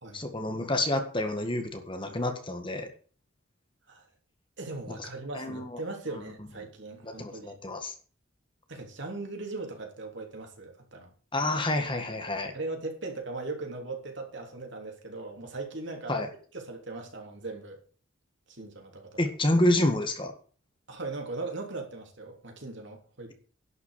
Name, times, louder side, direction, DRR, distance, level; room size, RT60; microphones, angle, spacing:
voice 1, 0.1-2.9 5.3-5.8 7.0-7.9 11.3-12.5 16.1-16.3 19.2-20.3, left 1 dB, 25° left, 1.6 m, -28 dB
voice 2, 4.6-7.6 8.7-11.1 12.5-16.2 16.5-17.8 18.5-19.2 20.9-23.3, right 3 dB, 55° right, 3.4 m, -39 dB
11.5 x 6.1 x 8.3 m
head